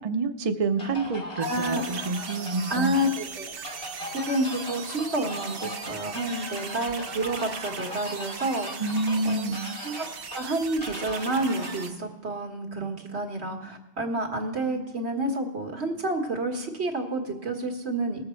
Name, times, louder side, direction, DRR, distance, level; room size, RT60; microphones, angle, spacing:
voice 1, 0.0-2.9 8.8-9.7, right 3 dB, 40° right, 7 dB, 0.7 m, -28 dB
sound 1, 0.8-11.9, left 1 dB, 65° left, 2.2 m, -40 dB
sound 2, 1.4-11.9, right 6 dB, 65° right, 0.9 m, -39 dB
voice 2, 1.4-2.0 2.7-3.5 4.1-8.9 9.2-9.5 9.8-10.1 10.3-18.3, right 1 dB, 90° right, 3 dB, 1.8 m, -29 dB
20.0 x 7.5 x 4.5 m, 0.98 s
omnidirectional pair, 1.1 m